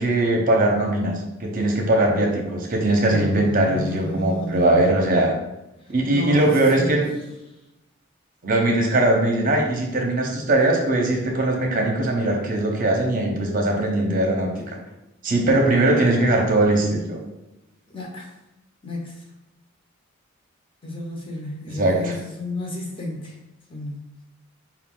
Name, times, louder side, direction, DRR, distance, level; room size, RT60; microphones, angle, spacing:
voice 1, 0.0-5.3 5.9-7.1 8.4-14.8 15.2-17.2 21.7-22.2, right 1 dB, 40° right, 0 dB, 0.7 m, -20 dB
voice 2, 3.1-4.8 6.1-7.1 17.9-18.3 18.8-19.2 20.8-23.3 23.7-23.9, left 2 dB, 25° left, -1 dB, 0.8 m, -32 dB
5.3 x 2.3 x 3.7 m, 0.93 s
head